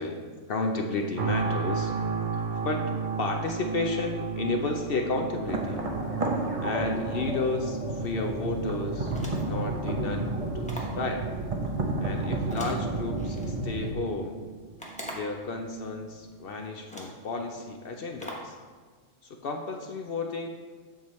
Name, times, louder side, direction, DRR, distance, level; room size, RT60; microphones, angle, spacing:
voice 1, 0.0-1.9 2.6-2.8 3.2-5.8 6.6-9.1 9.4-11.2 12.0-14.4 15.1-18.6 19.3-20.5, left 3 dB, 60° left, 3 dB, 0.6 m, -32 dB
sound 1, 1.2-16.2 16.7-16.8, right 5 dB, 55° right, 1.1 m, -36 dB
sound 2, 5.4-13.9, right 2 dB, 35° right, 0.5 m, -31 dB
sound 3, 9.1-9.7 10.6-11.0 12.5-13.5 14.8-15.4 16.3-16.4 16.9-17.3 18.2-18.6, equal, 5° left, 0.7 m, -41 dB
7.4 x 7.1 x 3.1 m, 1.5 s
omnidirectional pair, 1.6 m